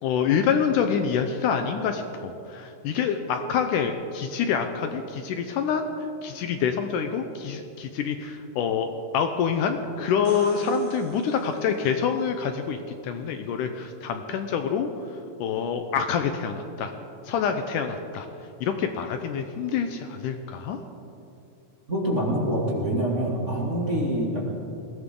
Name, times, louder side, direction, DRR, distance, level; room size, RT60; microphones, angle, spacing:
voice 1, 0.0-5.8 6.2-8.9 9.1-16.9 17.2-18.3 18.6-20.8, left 7 dB, 75° left, 6 dB, 2.1 m, -26 dB
sound 1, 10.1-12.0 15.7-15.8, right 4 dB, 85° right, 3.4 m, -46 dB
voice 2, 21.9-24.4, right 1 dB, 25° right, -5 dB, 2.3 m, -25 dB
21.0 x 17.0 x 3.8 m, 2.6 s
omnidirectional pair, 4.0 m